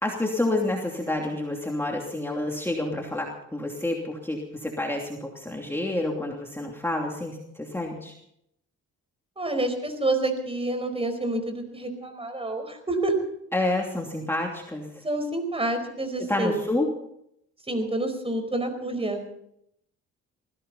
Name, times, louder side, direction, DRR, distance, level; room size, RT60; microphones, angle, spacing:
voice 1, 0.0-8.1 13.5-14.9 16.3-16.9, left 2 dB, 10° left, 0 dB, 2.9 m, -29 dB
voice 2, 9.4-13.1 15.0-16.6 17.7-19.2, right 2 dB, 20° right, 7 dB, 4.7 m, -28 dB
20.5 x 16.5 x 4.2 m, 0.74 s
cardioid pair, 90°, 30 cm